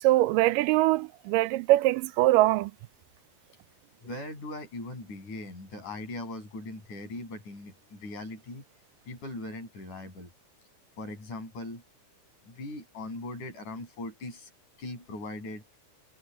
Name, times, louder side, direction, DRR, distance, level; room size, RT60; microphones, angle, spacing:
voice 1, 0.0-2.7, right 17 dB, 85° right, 2.2 m, -23 dB
voice 2, 4.0-8.6 9.1-10.3 11.0-11.8 12.4-14.5 14.8-15.6, left 2 dB, 60° left, 9.1 m, -40 dB
omnidirectional pair, 3.8 m